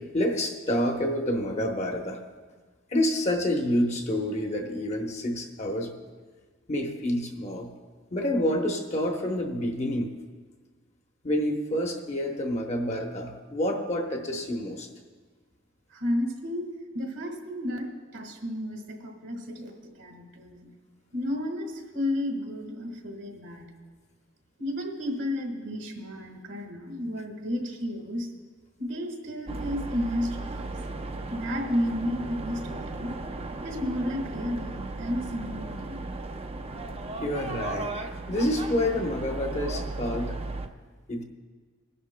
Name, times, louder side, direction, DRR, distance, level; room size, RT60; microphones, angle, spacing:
voice 1, 0.1-2.2 2.9-5.9 6.7-7.7 8.1-10.1 11.2-14.9 37.2-40.4 41.1-41.2, left 1 dB, 35° left, 2 dB, 1.0 m, -28 dB
voice 2, 15.9-16.7 16.9-20.7 21.1-21.7 21.9-23.7 24.6-28.3 28.8-30.7 31.3-33.1 33.6-36.1, left 1 dB, 75° right, 2 dB, 1.6 m, -32 dB
sound 1, 29.5-40.7, right 2 dB, 30° right, 0.5 m, -36 dB
23.0 x 11.0 x 2.2 m, 1.4 s
head